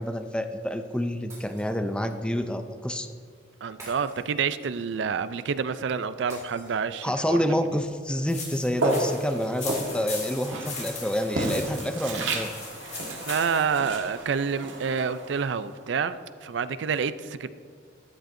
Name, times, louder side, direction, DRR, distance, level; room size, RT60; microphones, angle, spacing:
voice 1, 0.0-3.1 7.0-12.5, equal, 5° left, 7 dB, 0.4 m, -28 dB
Shatter, 1.3-2.2 3.8-4.9 6.3-7.3, right 1 dB, 15° right, 2.3 m, -48 dB
voice 2, 3.6-7.6 13.3-17.5, right 6 dB, 70° right, 13 dB, 0.4 m, -28 dB
sound 1, 8.3-13.8, left 4 dB, 35° left, 2.0 m, -39 dB
Walk footsteps, 8.7-15.9, right 1 dB, 85° right, 1.6 m, -32 dB
13.5 x 8.9 x 2.6 m, 2.2 s
head